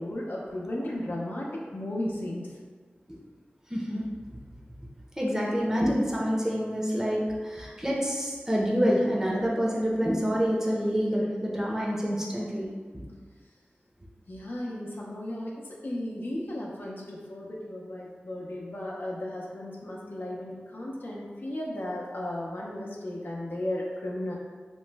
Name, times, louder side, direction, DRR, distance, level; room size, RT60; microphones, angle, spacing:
voice 1, 0.0-2.6 14.3-24.3, left 1 dB, 60° left, -3 dB, 0.5 m, -35 dB
voice 2, 3.7-4.1 5.2-12.7, equal, 15° right, -4 dB, 0.6 m, -27 dB
3.0 x 2.1 x 3.3 m, 1.5 s
wide cardioid pair, 55°, 4 cm